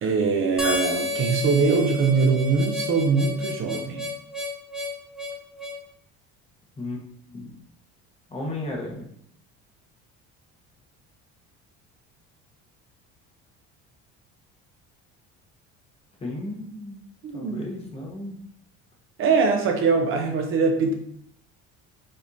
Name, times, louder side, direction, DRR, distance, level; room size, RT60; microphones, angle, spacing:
voice 1, 0.0-4.0 17.2-17.7 19.2-20.9, right 4 dB, 45° right, 3 dB, 0.7 m, -22 dB
Harmonica, 0.6-5.8, left 2 dB, ahead, 0.7 m, -30 dB
voice 2, 8.3-9.1 16.2-17.0 17.3-18.4, left 2 dB, 20° left, -1 dB, 1.0 m, -34 dB
5.3 x 3.4 x 2.7 m, 0.67 s
cardioid pair, 135°, 29 cm